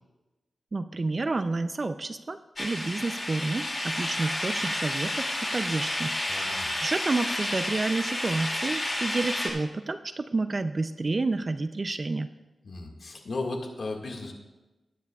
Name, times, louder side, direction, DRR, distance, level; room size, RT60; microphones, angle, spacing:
voice 1, 0.7-5.2 5.5-12.3, right 3 dB, 35° right, 10 dB, 0.4 m, -30 dB
sound 1, 2.6-9.5, left 1 dB, 25° left, 2.5 m, -31 dB
voice 2, 6.3-6.7 12.6-14.3, left 2 dB, 60° left, 1 dB, 1.8 m, -35 dB
19.5 x 9.7 x 2.4 m, 1.1 s
wide cardioid pair, 115°, 0 cm